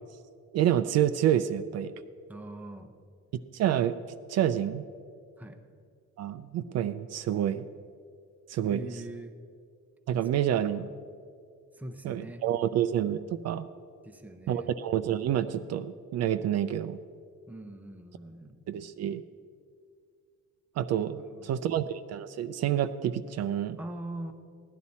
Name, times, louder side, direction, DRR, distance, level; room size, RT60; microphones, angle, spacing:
voice 1, 0.5-1.9 3.5-4.0 4.3-4.8 6.2-7.6 8.5-8.9 10.1-10.9 12.0-13.2 13.4-13.7 14.5-17.0 18.7-19.2 20.8-23.8, right 10 dB, 60° right, 11 dB, 0.4 m, -28 dB
voice 2, 2.3-3.0 5.4-5.6 8.6-9.3 10.2-10.4 10.6-10.8 11.7-12.4 14.0-14.7 17.5-18.6 21.2-21.7 23.8-24.3, right 1 dB, 5° right, 5 dB, 0.6 m, -42 dB
16.0 x 11.0 x 4.2 m, 2.2 s
cardioid pair, 170°, 30 cm